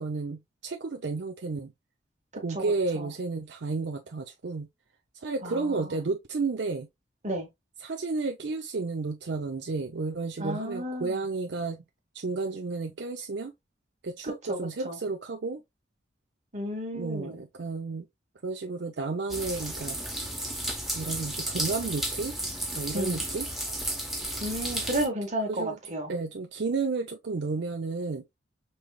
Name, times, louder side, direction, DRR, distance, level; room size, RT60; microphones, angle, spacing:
voice 1, 0.0-1.7 2.3-4.7 5.1-6.9 7.8-11.8 12.1-13.5 14.0-15.6 16.9-18.1 18.4-20.0 20.6-22.4 22.7-23.5 25.5-25.8 26.1-28.2, right 3 dB, 70° right, 0.5 m, -32 dB
voice 2, 2.5-3.1 5.4-6.0 7.2-7.5 10.4-11.2 14.5-14.6 14.8-15.0 16.5-17.4 22.9-23.2 24.4-26.1, right 1 dB, 40° right, 1.5 m, -33 dB
sound 1, 19.3-25.1, right 1 dB, ahead, 0.8 m, -33 dB
5.4 x 3.2 x 2.2 m
head